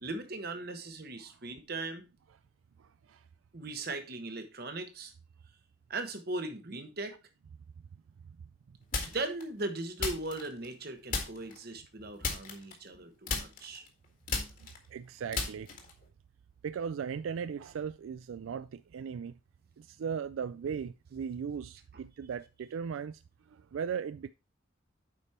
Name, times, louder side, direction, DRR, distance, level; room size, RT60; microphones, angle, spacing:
voice 1, 0.0-2.0 3.5-5.1 5.9-7.2 9.0-13.8, right 2 dB, 50° right, 1.3 m, -38 dB
voice 2, 2.8-3.2 14.6-15.7 16.6-19.3 19.8-23.2 23.5-24.3, right 7 dB, 85° right, 0.3 m, -38 dB
sound 1, 8.9-9.4 10.0-10.8 11.1-11.6 12.2-13.0 13.3-16.1, left 3 dB, 45° left, 1.8 m, -35 dB
8.3 x 5.3 x 4.3 m
head